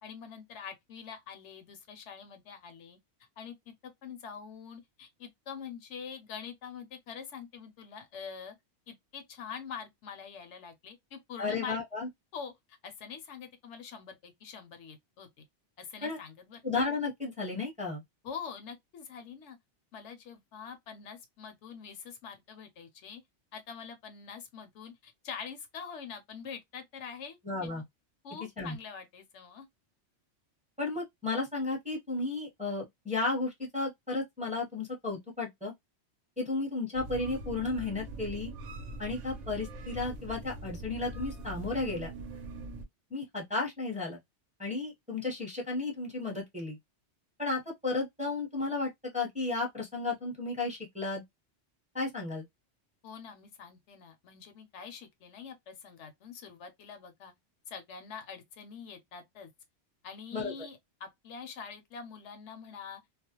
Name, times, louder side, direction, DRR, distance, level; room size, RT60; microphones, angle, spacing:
voice 1, 0.0-3.0 3.4-8.5 8.9-11.8 12.3-15.4 15.8-16.6 18.2-19.6 19.9-23.2 23.5-27.4 27.6-27.8 28.2-29.7 53.0-57.3 57.7-59.5 60.0-63.0, left 6 dB, 75° left, 0.9 m, -45 dB
voice 2, 11.4-12.1 16.0-16.2 16.6-18.0 27.4-27.8 28.6-28.8 30.8-35.7 36.4-38.5 39.0-42.1 43.1-44.2 44.6-46.8 47.4-51.2 51.9-52.5 60.3-60.5, left 3 dB, 5° right, 0.7 m, -33 dB
sound 1, 36.9-42.9, right 1 dB, 85° right, 0.9 m, -42 dB
2.4 x 2.0 x 2.8 m
omnidirectional pair, 1.2 m